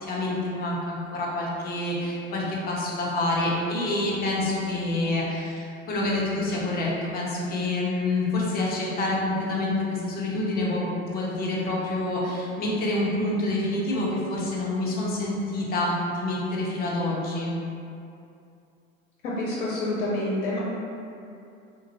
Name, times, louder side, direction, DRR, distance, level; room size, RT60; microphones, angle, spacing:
voice 1, 0.0-17.5, left 2 dB, 20° left, -4 dB, 0.6 m, -27 dB
voice 2, 19.2-20.6, left 1 dB, 60° left, -6 dB, 0.7 m, -28 dB
2.9 x 2.5 x 2.9 m, 2.5 s
figure-of-eight pair, 80°, 41 cm